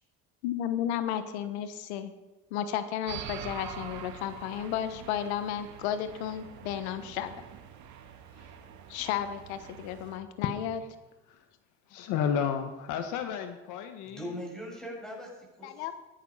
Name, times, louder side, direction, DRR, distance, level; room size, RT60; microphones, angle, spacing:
voice 1, 0.4-2.1 2.5-7.4 8.9-10.8 15.6-15.9, left 10 dB, 90° left, 11 dB, 1.2 m, -33 dB
sound 1, 3.1-10.2, right 9 dB, 60° right, 2.4 m, -45 dB
voice 2, 11.9-14.3, left 8 dB, 65° left, 7 dB, 1.6 m, -32 dB
voice 3, 14.0-16.0, equal, ahead, -2 dB, 7.8 m, -41 dB
17.5 x 13.5 x 5.7 m, 1.1 s
supercardioid pair, 105°, 32 cm